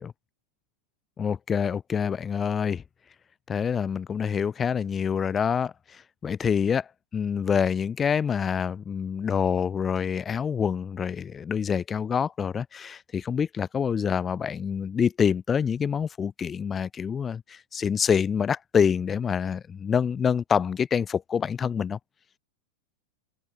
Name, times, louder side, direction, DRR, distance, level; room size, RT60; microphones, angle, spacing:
voice 1, 1.2-2.8 3.5-5.7 6.2-6.8 7.1-22.0, left 7 dB, 20° left, 2.7 m, -26 dB
open air
figure-of-eight pair, 90°, 0 cm